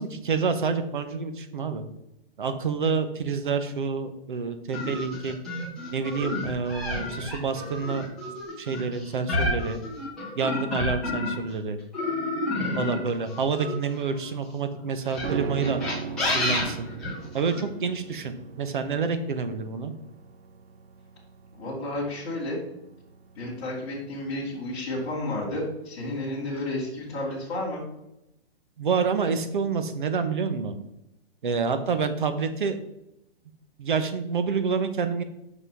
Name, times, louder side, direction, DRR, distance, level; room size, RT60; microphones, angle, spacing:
voice 1, 0.0-1.8 2.4-5.4 5.9-8.1 8.6-9.8 10.4-11.8 12.8-15.8 16.3-16.9 17.3-19.9 28.8-30.8 31.4-32.8 33.8-35.2, right 5 dB, 50° right, 9 dB, 1.0 m, -28 dB
sound 1, 4.7-11.5 11.9-14.3 15.0-17.6, left 2 dB, ahead, 1.2 m, -30 dB
voice 2, 12.6-13.0 21.5-22.6 23.3-27.8, left 1 dB, 25° left, -8 dB, 2.6 m, -32 dB
sound 2, 15.2-24.6 24.9-25.0, right 5 dB, 80° right, 0.7 m, -38 dB
6.0 x 5.7 x 6.1 m, 0.84 s
hypercardioid pair, 180°, 31 cm